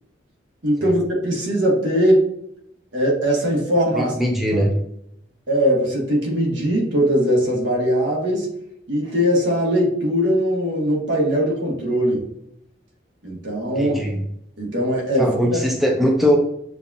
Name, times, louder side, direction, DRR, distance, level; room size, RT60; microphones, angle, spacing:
voice 1, 0.6-2.2 2.9-4.1 4.5-4.6 5.5-8.5 8.9-12.2 13.2-14.0 14.6-15.6, equal, 75° right, -3 dB, 1.4 m, -20 dB
voice 2, 4.0-4.8 13.8-14.2 15.2-16.4, equal, ahead, -1 dB, 0.5 m, -20 dB
6.8 x 2.4 x 2.7 m, 0.75 s
head